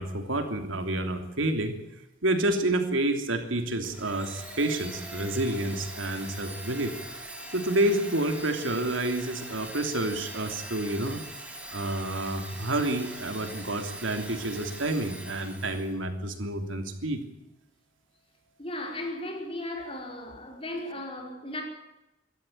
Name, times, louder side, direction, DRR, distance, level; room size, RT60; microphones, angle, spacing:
voice 1, 0.0-1.8 2.2-6.9 7.5-11.2 11.7-17.2, right 1 dB, 80° right, 3.1 m, -29 dB
Domestic sounds home sounds, 3.8-15.9, right 1 dB, 5° right, 4.2 m, -42 dB
voice 2, 18.6-21.6, left 1 dB, 30° left, 5.1 m, -36 dB
24.5 x 13.5 x 9.3 m
head